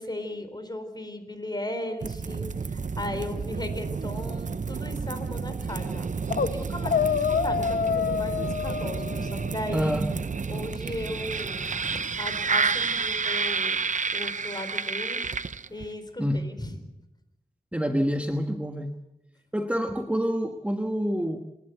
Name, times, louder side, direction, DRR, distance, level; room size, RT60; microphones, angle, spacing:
voice 1, 0.0-6.1 6.5-10.0 10.5-13.8 14.1-15.2 15.7-16.7, left 1 dB, 30° left, 8 dB, 4.3 m, -37 dB
sound 1, 2.0-15.9, right 5 dB, 55° right, 0.7 m, -30 dB
sound 2, 6.1-6.5 6.8-9.6, left 6 dB, 80° left, 1.1 m, -27 dB
voice 2, 9.7-10.1 16.2-16.5 17.7-19.0 19.5-21.4, equal, 10° right, 4 dB, 1.4 m, -27 dB
27.5 x 11.5 x 8.1 m, 0.94 s
wide cardioid pair, 55°, 15 cm